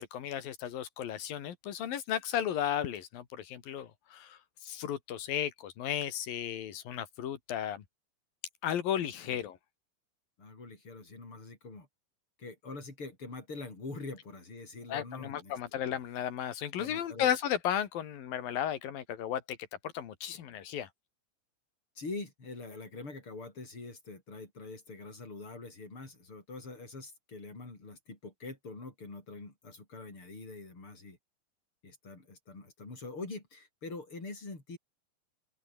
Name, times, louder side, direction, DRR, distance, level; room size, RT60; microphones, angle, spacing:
voice 1, 0.0-7.8 8.6-9.6 14.9-19.6 19.9-20.9, left 10 dB, 90° left, 3.9 m, -34 dB
voice 2, 10.4-11.9 12.4-15.6 16.8-17.3 22.0-31.2 31.8-34.8, left 3 dB, 35° left, 7.8 m, -44 dB
open air
omnidirectional pair, 4.0 m